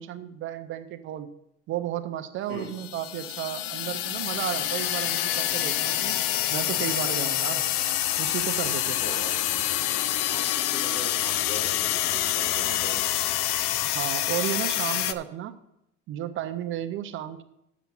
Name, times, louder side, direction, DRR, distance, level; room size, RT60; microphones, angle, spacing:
voice 1, 0.0-1.3 1.7-7.7 8.2-9.0 13.9-15.6 16.1-17.4, right 11 dB, 40° right, 9 dB, 0.5 m, -33 dB
voice 2, 2.5-2.8 8.9-9.4 10.3-13.1, left 1 dB, 65° left, 0 dB, 3.0 m, -40 dB
sound 1, 2.7-15.1, left 13 dB, 85° left, 0.6 m, -27 dB
7.1 x 6.7 x 7.4 m, 0.81 s
cardioid pair, 175°, 30 cm